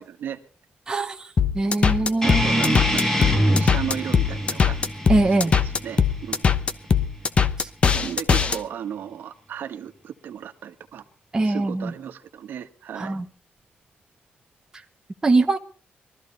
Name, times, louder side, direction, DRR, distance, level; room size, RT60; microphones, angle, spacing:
voice 1, 0.9-1.3 1.5-2.7 5.1-5.5 7.6-7.7 11.3-11.9 13.0-13.2 15.2-15.6, right 2 dB, 20° right, 3 dB, 1.2 m, -22 dB
sound 1, 1.4-8.6, left 6 dB, 30° left, 0.9 m, -20 dB
sound 2, 2.2-7.3, equal, 15° left, 2.4 m, -26 dB
voice 2, 2.2-3.3 3.6-4.8 5.6-6.5 7.9-11.0 11.4-13.2, right 9 dB, 65° right, 7 dB, 1.5 m, -35 dB
22.0 x 13.5 x 4.1 m, 0.40 s
wide cardioid pair, 170°, 4 cm